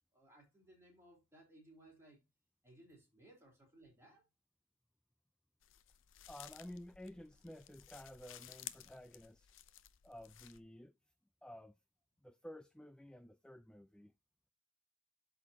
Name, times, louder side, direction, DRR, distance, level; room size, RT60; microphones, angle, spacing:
voice 1, 0.1-2.2 2.6-4.3, right 1 dB, 15° right, 3.9 m, -62 dB
sound 1, 5.6-10.6, left 12 dB, 70° left, 0.6 m, -55 dB
voice 2, 6.3-9.5 10.0-10.9 11.4-11.8 12.2-14.1, equal, 5° left, 0.3 m, -53 dB
12.5 x 4.1 x 2.8 m
head